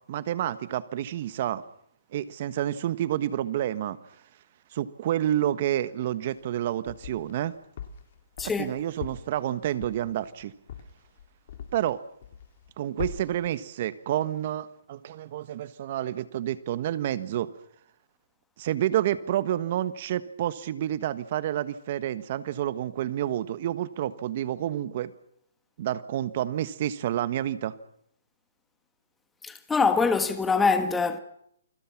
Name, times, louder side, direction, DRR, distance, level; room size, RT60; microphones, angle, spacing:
voice 1, 0.1-1.6 2.1-4.0 4.7-7.5 8.4-10.5 11.7-12.0 12.8-17.5 18.6-25.1 25.8-27.7, right 12 dB, 40° right, 1.3 m, -29 dB
sound 1, 6.3-7.4 7.8-12.0 12.2-12.7 13.0-13.5, left 8 dB, 45° left, 2.6 m, -40 dB
voice 2, 8.4-8.7 29.4-31.2, left 4 dB, 5° left, 1.3 m, -24 dB
29.0 x 21.0 x 6.0 m
hypercardioid pair, 160°, 0 cm